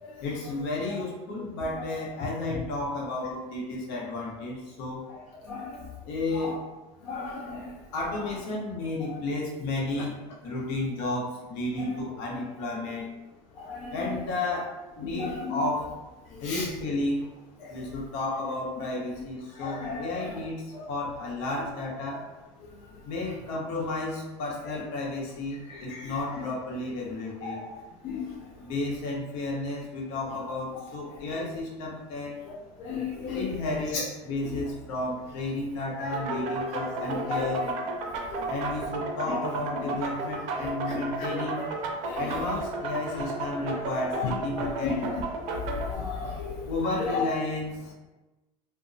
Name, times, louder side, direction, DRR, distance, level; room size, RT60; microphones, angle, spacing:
voice 1, 0.2-5.0 6.0-6.6 7.9-13.1 13.9-15.9 16.4-17.2 17.7-22.2 23.0-27.7 28.6-32.4 33.3-37.7 38.5-41.6 42.1-45.1 46.6-47.9, left 2 dB, 75° left, -3 dB, 0.9 m, -32 dB
voice 2, 5.5-5.8 6.4-6.5 7.0-7.7 9.1-9.2 11.8-11.9 13.6-13.9 15.0-15.6 16.4-16.7 17.6-17.7 19.6-20.0 20.7-20.8 25.7-26.1 27.4-27.6 28.0-28.4 32.5-33.5 33.9-34.0 34.4-34.5 36.0-36.4 36.7-37.8 38.3-38.5 40.9-41.7 42.0-42.2 44.1-44.9 45.7-46.7 47.0-47.3, left 5 dB, 50° left, -3 dB, 0.4 m, -34 dB
sound 1, 36.1-45.9, right 3 dB, 55° right, 0.5 m, -33 dB
2.9 x 2.1 x 2.6 m, 1.1 s
cardioid pair, 140°, 15 cm